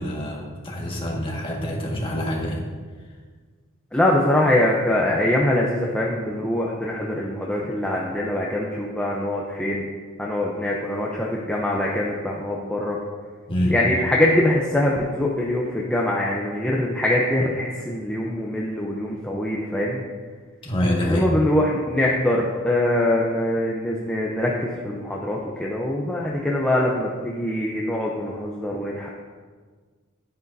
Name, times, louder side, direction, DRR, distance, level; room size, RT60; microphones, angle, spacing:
voice 1, 0.0-2.6 13.5-13.8 20.6-21.3, equal, 25° left, -3 dB, 1.6 m, -26 dB
voice 2, 3.9-9.8 10.2-13.0 13.7-20.0 21.1-29.1, left 1 dB, 5° left, -4 dB, 0.7 m, -23 dB
11.0 x 9.2 x 2.7 m, 1.5 s
head